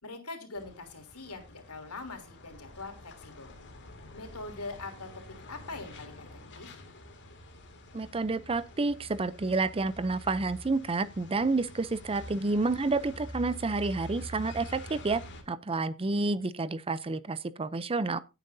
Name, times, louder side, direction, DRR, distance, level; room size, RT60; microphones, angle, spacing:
voice 1, 0.0-3.5 4.1-5.1 5.5-6.3 6.5-6.7, left 3 dB, 80° left, 3.3 m, -42 dB
sound 1, 0.5-15.4, equal, 55° left, 2.3 m, -47 dB
voice 2, 7.9-15.2 15.5-18.2, right 3 dB, 25° right, 0.5 m, -29 dB
16.5 x 9.1 x 2.7 m
head